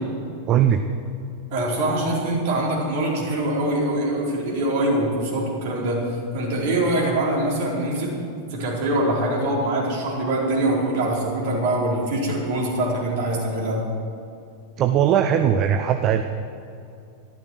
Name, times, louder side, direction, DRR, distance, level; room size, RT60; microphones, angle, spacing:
voice 1, 0.5-0.8 14.8-16.2, right 9 dB, 35° right, 8 dB, 0.7 m, -19 dB
voice 2, 1.5-8.2 8.5-13.8, right 1 dB, 50° right, -4 dB, 4.4 m, -23 dB
13.5 x 13.0 x 6.3 m, 2.5 s
figure-of-eight pair, 90°, 0 cm